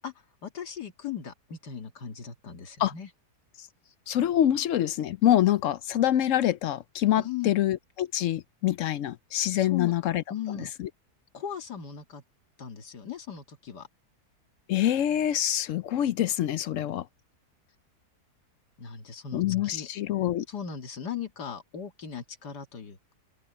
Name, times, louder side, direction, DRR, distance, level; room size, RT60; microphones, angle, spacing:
voice 1, 0.4-3.1 7.2-7.5 9.5-9.9 10.3-10.7 11.3-12.2 12.6-13.9 18.8-19.9 20.5-23.1, left 8 dB, 80° left, 2.5 m, -38 dB
voice 2, 4.1-10.2 10.6-10.9 14.7-17.1 19.3-20.4, left 12 dB, 65° left, 0.8 m, -25 dB
open air
omnidirectional pair, 1.7 m